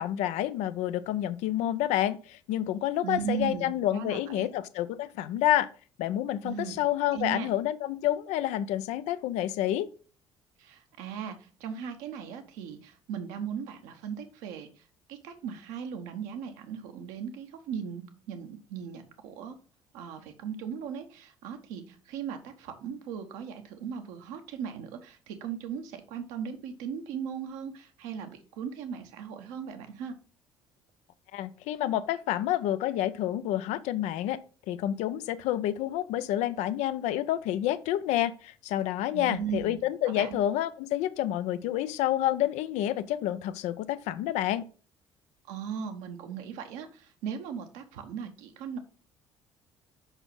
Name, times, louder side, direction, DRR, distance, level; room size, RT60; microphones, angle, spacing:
voice 1, 0.0-5.7 6.0-9.9 31.3-34.4 34.7-44.6, left 12 dB, 55° left, 14 dB, 0.6 m, -29 dB
voice 2, 3.0-4.5 6.4-6.8 7.1-7.5 10.6-19.6 19.9-30.1 39.1-39.8 40.1-40.4 45.5-48.8, right 7 dB, 60° right, 6 dB, 1.2 m, -38 dB
5.9 x 5.6 x 5.5 m, 0.39 s
figure-of-eight pair, 50°, 14 cm